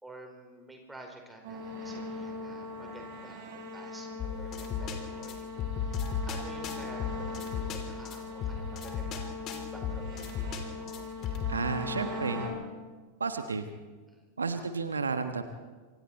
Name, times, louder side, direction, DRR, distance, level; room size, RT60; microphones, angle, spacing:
voice 1, 0.0-4.1 4.4-5.5 6.3-10.2 14.1-14.2, right 1 dB, 5° right, 2 dB, 5.0 m, -50 dB
sound 1, 1.4-12.5, left 2 dB, 45° right, 4.6 m, -40 dB
sound 2, 4.2-11.6, left 6 dB, 35° left, 3.2 m, -36 dB
voice 2, 11.5-12.4 13.2-13.7 14.4-15.4, right 4 dB, 75° right, 9 dB, 1.2 m, -32 dB
27.5 x 25.0 x 4.4 m, 1.4 s
figure-of-eight pair, 90°, 0 cm